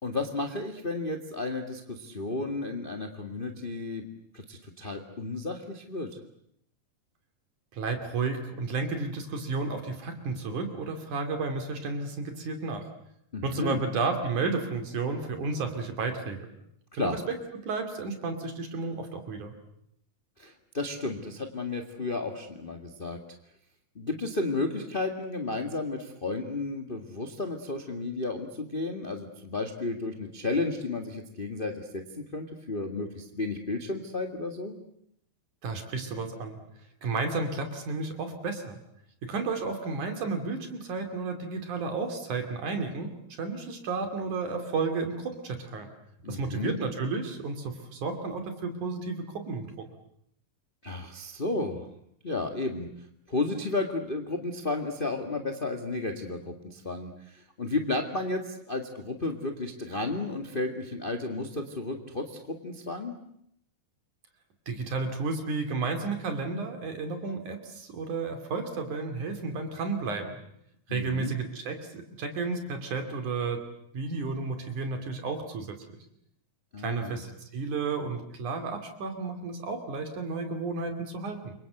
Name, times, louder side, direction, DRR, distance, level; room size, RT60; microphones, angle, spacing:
voice 1, 0.0-4.0 4.3-6.1 13.3-13.8 16.9-17.2 20.4-23.2 23.9-34.7 46.2-46.8 50.8-51.9 52.2-52.9 53.3-63.1 70.9-71.3 76.7-77.2, left 3 dB, 25° left, 4 dB, 1.3 m, -33 dB
voice 2, 7.7-12.8 13.4-16.5 17.0-17.2 17.6-19.5 35.6-36.6 37.0-38.8 39.2-43.1 43.4-45.9 46.3-49.9 64.7-70.4 70.9-73.6 73.9-75.8 76.8-81.5, right 4 dB, 60° right, 5 dB, 4.0 m, -32 dB
28.5 x 24.0 x 7.9 m, 0.72 s
omnidirectional pair, 4.0 m